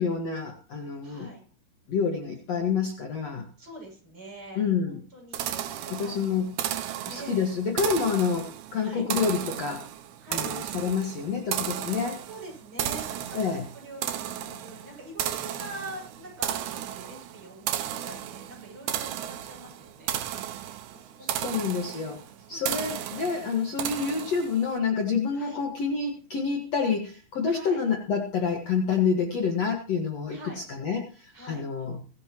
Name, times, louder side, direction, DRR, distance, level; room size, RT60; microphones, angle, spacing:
voice 1, 0.0-1.3 1.9-3.5 4.6-5.0 5.9-6.5 7.1-9.9 10.3-12.2 13.3-13.7 21.2-22.2 22.5-32.0, left 5 dB, 50° left, 2 dB, 2.3 m, -28 dB
voice 2, 1.0-1.4 2.6-2.7 3.6-6.8 7.1-7.5 8.8-9.1 10.2-10.5 12.3-21.6 22.5-23.5 25.3-25.6 27.5-27.8 30.3-30.6 31.3-31.6, right 1 dB, 30° right, -1 dB, 7.6 m, -45 dB
sound 1, 5.3-24.7, right 11 dB, 90° right, 3.1 m, -34 dB
23.5 x 11.5 x 3.0 m, 0.37 s
omnidirectional pair, 4.4 m